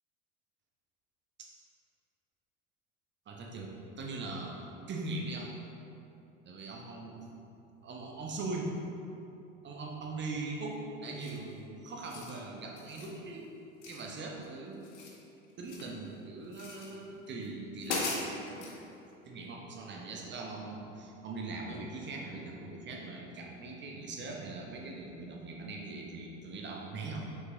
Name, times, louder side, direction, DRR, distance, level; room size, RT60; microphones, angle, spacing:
voice 1, 3.3-5.5 6.4-7.3 7.8-8.7 9.6-13.5 13.8-14.8 15.6-18.9 19.2-27.2, right 3 dB, 30° right, -1 dB, 1.0 m, -41 dB
sound 1, 11.2-11.5 11.9-12.4 12.8-13.1 13.8-14.5 14.7-16.0 16.5-16.9 17.4-17.5 17.8-18.8, left 3 dB, 70° left, 1.0 m, -39 dB
6.1 x 5.7 x 3.0 m, 2.7 s
figure-of-eight pair, 70°, 37 cm